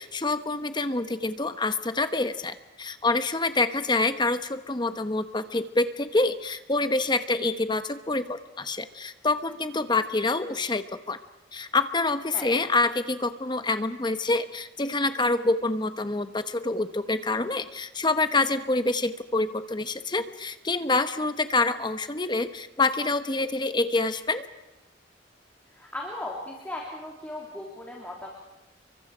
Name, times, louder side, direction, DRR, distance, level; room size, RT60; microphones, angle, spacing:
voice 1, 0.0-11.2 11.5-24.5, left 3 dB, 25° left, 10 dB, 1.0 m, -26 dB
voice 2, 25.7-28.3, left 1 dB, 10° left, -2 dB, 3.4 m, -37 dB
29.5 x 24.0 x 5.0 m, 1.0 s
head